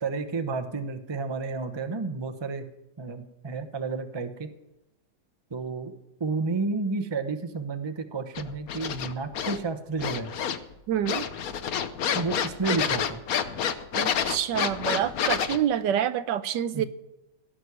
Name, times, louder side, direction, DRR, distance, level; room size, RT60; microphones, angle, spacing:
voice 1, 0.0-2.7 3.0-4.5 5.5-5.9 6.2-10.3 12.1-13.2 16.7-16.8, right 4 dB, 20° right, 8 dB, 0.7 m, -31 dB
sound 1, 8.3-9.6 10.0-10.7 11.0-15.6, left 8 dB, 60° left, 1.2 m, -29 dB
voice 2, 10.9-11.3 13.9-16.8, right 10 dB, 80° right, 13 dB, 1.4 m, -27 dB
17.0 x 6.4 x 9.6 m, 0.93 s
omnidirectional pair, 1.9 m